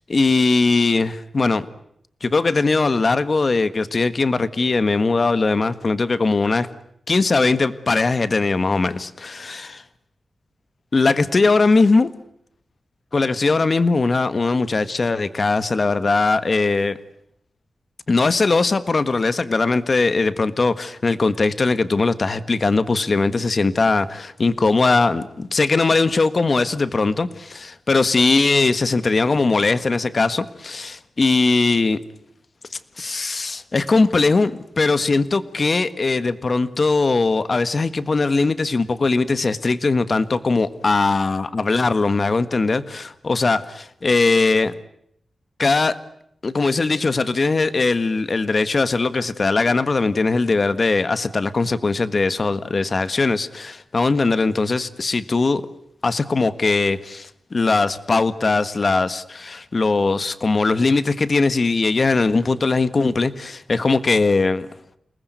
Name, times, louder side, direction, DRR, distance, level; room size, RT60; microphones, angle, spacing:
voice 1, 0.1-1.6 2.2-6.7 7.1-9.8 10.9-12.1 13.1-17.0 18.1-32.0 33.0-44.7 45.6-46.0 46.4-55.6 56.0-64.7, left 3 dB, 40° left, 13 dB, 1.5 m, -20 dB
29.5 x 19.5 x 9.3 m, 0.73 s
wide cardioid pair, 120°, 0 cm